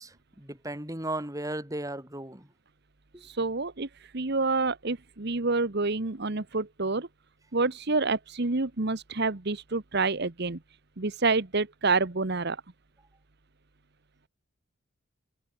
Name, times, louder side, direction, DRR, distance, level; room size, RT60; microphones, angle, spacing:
voice 1, 0.0-2.5 3.1-3.2, right 1 dB, 15° right, 3.2 m, -36 dB
voice 2, 3.2-3.9 4.1-7.1 7.5-10.6 11.0-12.6, right 3 dB, 50° right, 1.2 m, -28 dB
head